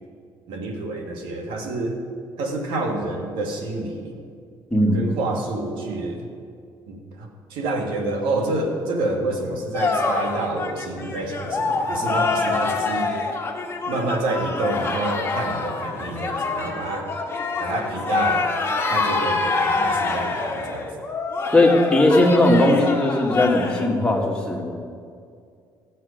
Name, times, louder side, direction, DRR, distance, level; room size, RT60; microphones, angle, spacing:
voice 1, 0.5-2.0 2.4-4.2 4.9-6.3 6.9-13.1 13.9-17.1 17.6-18.5 18.9-20.9, right 2 dB, 85° right, 3 dB, 1.7 m, -28 dB
voice 2, 4.7-5.0 21.5-24.7, left 1 dB, 10° left, -1 dB, 1.9 m, -18 dB
sound 1, 9.7-23.9, left 3 dB, 30° left, 1.5 m, -25 dB
14.5 x 7.5 x 5.1 m, 2.3 s
cardioid pair, 105°, 8 cm